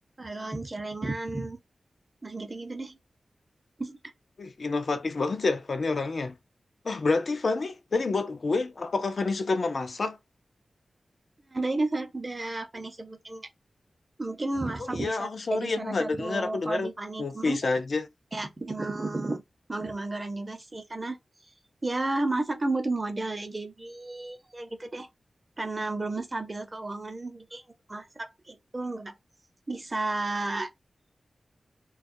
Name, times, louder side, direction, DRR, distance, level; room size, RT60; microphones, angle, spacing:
voice 1, 0.2-1.6 2.2-3.0 3.8-4.1 11.5-13.5 14.2-17.6 18.3-19.4 19.7-21.2 21.8-25.1 25.6-27.6 27.9-29.2 29.7-30.7, right 2 dB, 35° right, 0.7 m, -32 dB
voice 2, 4.4-6.3 6.8-10.2 15.0-16.9 17.2-18.1, left 3 dB, 65° left, 0.5 m, -28 dB
2.3 x 2.1 x 2.6 m
cardioid pair, 60°, 0 cm